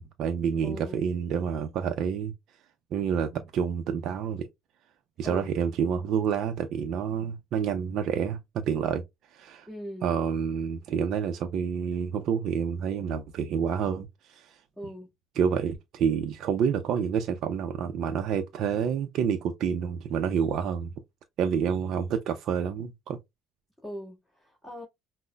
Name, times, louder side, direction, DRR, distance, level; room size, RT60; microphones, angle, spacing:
voice 1, 0.0-2.3 2.9-4.5 5.2-9.0 9.3-9.7 10.0-14.6 15.4-20.9 21.4-23.2, right 7 dB, 60° right, 0.4 m, -28 dB
voice 2, 0.6-1.0 5.2-5.5 9.6-10.1 14.7-15.1 23.8-24.8, equal, ahead, 1.6 m, -40 dB
5.4 x 2.0 x 2.2 m
supercardioid pair, 105°, 0 cm